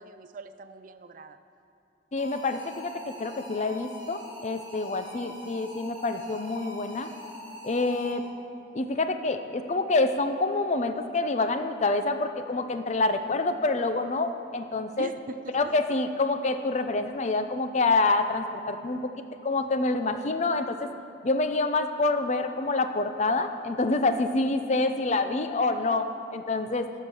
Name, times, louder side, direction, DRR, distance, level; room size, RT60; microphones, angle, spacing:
voice 1, 0.0-1.4 15.0-15.7, right 3 dB, 45° right, 11 dB, 0.4 m, -42 dB
voice 2, 2.1-7.1 7.6-8.2 8.7-15.1 15.5-19.1 19.4-20.9 21.2-26.9, left 3 dB, 35° left, 9 dB, 0.5 m, -27 dB
sound 1, 2.2-8.4, left 1 dB, 25° right, 2.0 m, -44 dB
13.0 x 6.6 x 6.1 m, 2.7 s
head